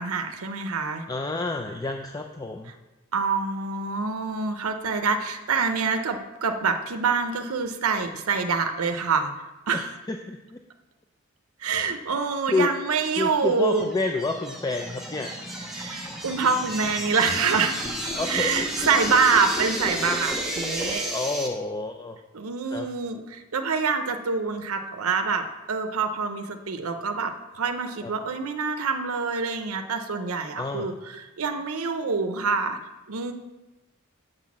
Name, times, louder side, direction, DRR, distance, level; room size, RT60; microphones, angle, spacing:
voice 1, 0.0-1.1 3.1-9.9 11.6-13.9 15.7-17.9 18.3-21.1 22.3-32.8 33.1-33.3, right 5 dB, 75° right, 7 dB, 0.6 m, -26 dB
voice 2, 1.1-2.7 9.7-10.6 12.5-12.7 13.2-15.3 18.1-18.5 21.1-22.2 22.7-22.9 28.0-28.1 30.6-30.9, left 3 dB, 15° left, 4 dB, 0.4 m, -29 dB
sound 1, 13.5-21.5, right 1 dB, ahead, 1.1 m, -32 dB
6.5 x 5.9 x 7.3 m, 1.1 s
head